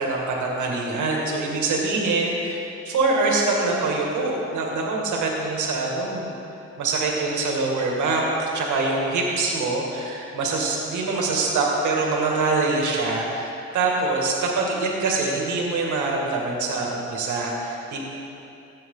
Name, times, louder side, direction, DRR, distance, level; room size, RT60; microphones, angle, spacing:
voice 1, 0.0-6.3 6.8-18.1, right 3 dB, 75° right, -1 dB, 2.2 m, -24 dB
15.0 x 8.4 x 3.9 m, 2.8 s
cardioid pair, 90°, 30 cm